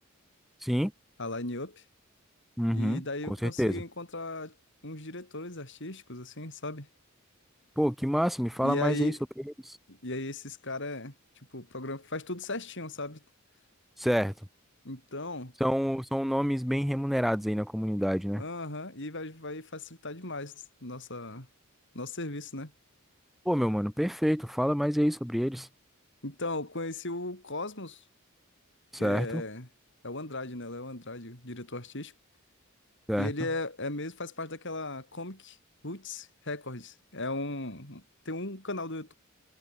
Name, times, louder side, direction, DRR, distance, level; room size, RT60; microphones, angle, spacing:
voice 1, 1.2-1.8 2.7-4.5 4.8-6.9 8.6-9.2 9.9-11.1 11.5-13.2 14.8-15.5 18.3-21.5 21.9-22.7 26.2-28.0 29.0-29.7 30.0-32.1 33.2-35.6 35.8-39.1, left 2 dB, 60° left, 7.9 m, -37 dB
voice 2, 2.6-3.0 3.3-3.8 7.8-9.2 9.6-9.8 14.0-14.3 15.6-18.4 23.4-25.7 28.9-29.4 33.1-33.3, equal, ahead, 1.5 m, -28 dB
head